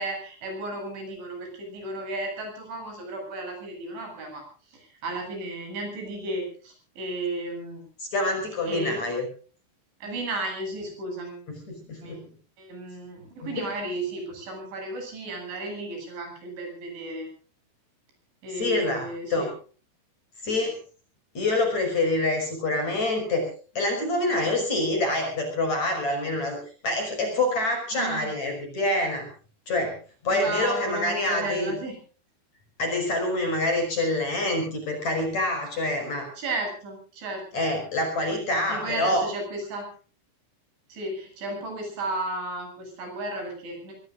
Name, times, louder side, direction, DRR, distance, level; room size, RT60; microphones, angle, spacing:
voice 1, 0.0-7.8 8.7-9.1 10.0-11.4 12.0-12.2 12.6-17.3 18.4-19.5 27.9-28.3 30.3-32.0 36.4-37.6 38.7-39.9 40.9-43.9, right 2 dB, 65° right, 3 dB, 10.0 m, -34 dB
voice 2, 8.0-9.2 11.5-12.2 13.4-13.7 18.6-19.5 20.4-20.8 21.3-23.5 23.7-26.6 26.8-29.3 29.7-29.9 30.2-31.7 32.8-36.3 37.5-39.2, left 2 dB, 35° left, 4 dB, 6.5 m, -26 dB
24.5 x 21.0 x 2.5 m, 0.40 s
omnidirectional pair, 5.7 m